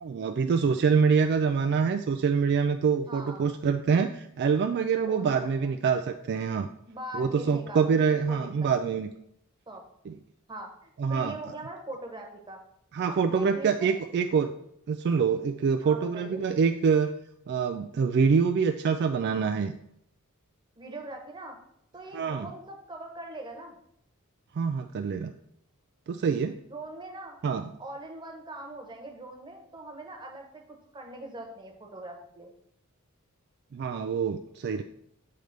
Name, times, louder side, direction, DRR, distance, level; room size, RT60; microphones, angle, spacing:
voice 1, 0.0-6.7 7.1-9.1 10.1-10.2 11.0-11.3 12.9-14.5 14.9-17.1 17.5-19.7 22.1-22.5 24.6-25.3 26.1-26.6 27.4-27.6 33.7-34.8, right 6 dB, 50° right, 7 dB, 0.3 m, -25 dB
voice 2, 3.1-3.5 5.1-5.7 6.9-8.7 9.7-9.8 10.5-12.6 13.0-14.0 15.8-16.4 20.8-21.5 21.9-23.8 26.7-27.4 27.8-30.6 30.9-32.5, right 1 dB, 20° right, 1 dB, 1.1 m, -41 dB
7.8 x 3.3 x 5.1 m, 0.74 s
head